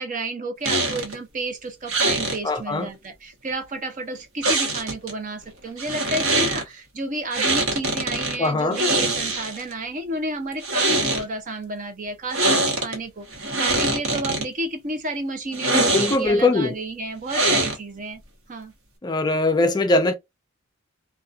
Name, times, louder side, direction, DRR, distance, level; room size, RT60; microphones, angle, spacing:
voice 1, 0.0-18.2 18.5-18.7, right 2 dB, 40° right, 0.6 m, -31 dB
sound 1, 0.6-1.2 1.9-2.4 4.4-5.1 5.8-6.6 7.3-8.4 8.7-9.7 10.5-11.2 12.3-13.0 13.3-14.4 15.5-16.4 17.3-18.0, right 2 dB, 75° right, 1.0 m, -23 dB
voice 2, 2.4-2.9 8.4-8.8 15.7-16.7 19.0-20.1, left 2 dB, 20° left, 0.3 m, -21 dB
2.6 x 2.3 x 2.3 m
head